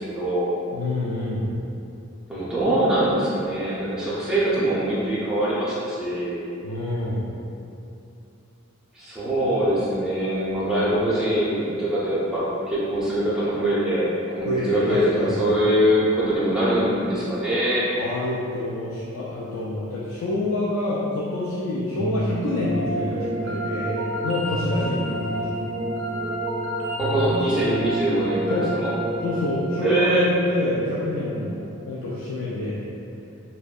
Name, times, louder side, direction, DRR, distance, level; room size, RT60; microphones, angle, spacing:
voice 1, 0.0-0.5 2.3-6.5 8.9-17.9 27.0-28.9 29.8-30.3, right 1 dB, 5° right, -10 dB, 0.5 m, -23 dB
voice 2, 0.7-1.5 6.6-7.3 14.4-15.5 17.9-25.7 28.5-28.7 29.2-32.9, left 2 dB, 80° left, -7 dB, 0.3 m, -27 dB
sound 1, 22.0-31.1, right 1 dB, 70° right, 0.4 m, -29 dB
2.6 x 2.1 x 2.3 m, 2.7 s
head